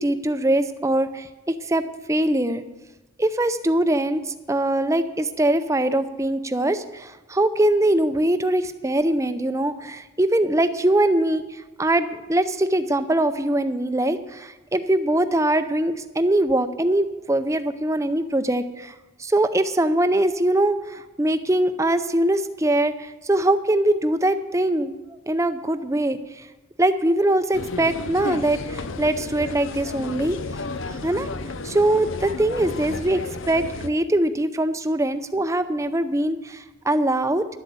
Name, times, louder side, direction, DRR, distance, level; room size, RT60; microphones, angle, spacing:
voice 1, 0.0-2.6 3.2-18.9 19.2-24.9 25.3-26.5 26.8-30.4 30.9-31.3 31.6-37.5, right 1 dB, 15° right, 11 dB, 0.5 m, -22 dB
sound 1, 27.5-33.9, left 3 dB, 80° left, 0.7 m, -32 dB
11.5 x 7.9 x 8.4 m, 1.1 s
head